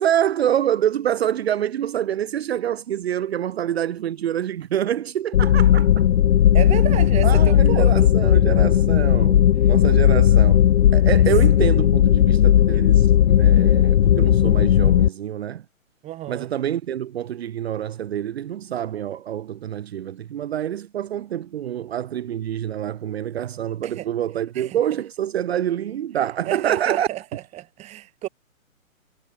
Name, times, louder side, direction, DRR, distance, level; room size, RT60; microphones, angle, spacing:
voice 1, 0.0-6.1 7.2-10.6 10.9-15.6 16.3-27.1, right 10 dB, 45° right, 1.3 m, -26 dB
sound 1, 5.3-15.1, left 11 dB, 55° left, 0.5 m, -16 dB
voice 2, 6.5-8.1 16.0-16.5 23.8-24.1 24.6-24.8 26.5-28.3, right 15 dB, 15° right, 2.1 m, -31 dB
hypercardioid pair, 145°, 42 cm